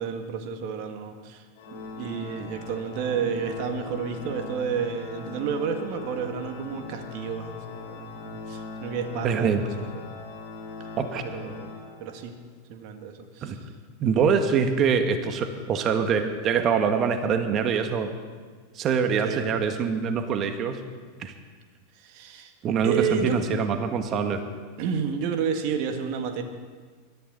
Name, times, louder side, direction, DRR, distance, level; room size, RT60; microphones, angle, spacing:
voice 1, 0.0-1.4 1.7-10.0 11.2-11.7 12.0-12.3 12.7-13.5 19.2-19.5 21.9-22.5 22.8-23.4 24.8-26.4, right 6 dB, 55° right, 5 dB, 1.8 m, -31 dB
Organ, 1.5-12.4, left 3 dB, 60° left, 5.7 m, -40 dB
voice 2, 9.2-9.6 11.0-11.2 13.4-13.6 14.0-18.1 18.7-20.8 21.2-21.3 22.6-24.4, right 6 dB, 40° right, 7 dB, 1.6 m, -24 dB
21.0 x 14.0 x 4.1 m, 1.6 s
hypercardioid pair, 90°, 0 cm